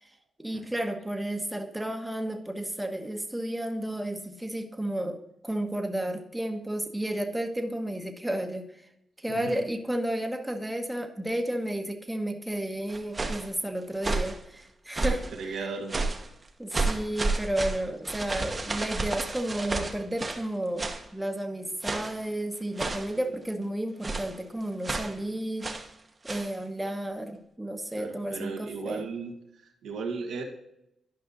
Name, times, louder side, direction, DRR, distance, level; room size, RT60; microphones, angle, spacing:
voice 1, 0.4-8.8 9.2-15.2 15.5-15.6 16.6-25.8 26.2-29.1, right 1 dB, 10° right, 5 dB, 1.3 m, -32 dB
sound 1, 12.9-13.5 14.0-14.4 14.9-15.3 15.9-16.3 16.7-20.5 20.8-21.1 21.8-22.2 22.8-23.2 24.0-24.4 24.8-25.2 25.6-25.9 26.2-26.5, right 3 dB, 30° right, 1.2 m, -31 dB
voice 2, 14.9-16.1 23.1-23.3 27.9-29.3 29.6-30.4, right 4 dB, 85° right, 2 dB, 1.6 m, -36 dB
12.0 x 5.3 x 3.9 m, 0.79 s
cardioid pair, 65°, 0 cm